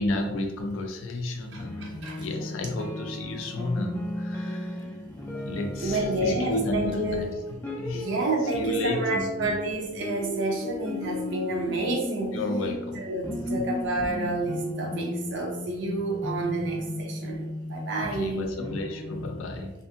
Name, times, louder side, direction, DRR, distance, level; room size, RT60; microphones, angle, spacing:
voice 1, 0.0-4.9 5.4-7.3 7.8-8.1 8.5-9.5 12.3-13.1 13.6-13.7 18.1-19.7, left 2 dB, 75° left, 4 dB, 0.4 m, -32 dB
voice 2, 1.5-2.3 5.8-7.3 7.9-12.3 13.0-18.5, right 2 dB, 60° right, -1 dB, 0.5 m, -29 dB
sound 1, 1.6-19.3, left 1 dB, 10° left, 0.3 m, -36 dB
2.5 x 2.5 x 2.5 m, 1.0 s
head